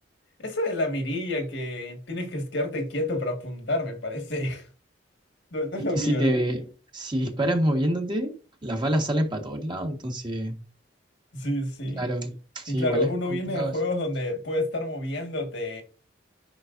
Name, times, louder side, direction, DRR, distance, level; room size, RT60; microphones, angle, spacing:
voice 1, 0.4-4.7 5.5-6.3 11.3-12.0 12.7-15.8, left 1 dB, 70° left, 1.8 m, -29 dB
voice 2, 5.9-6.7 6.9-8.3 8.6-10.6 12.0-13.1 13.5-13.7, right 1 dB, 25° right, 1.5 m, -27 dB
9.8 x 5.6 x 2.6 m
head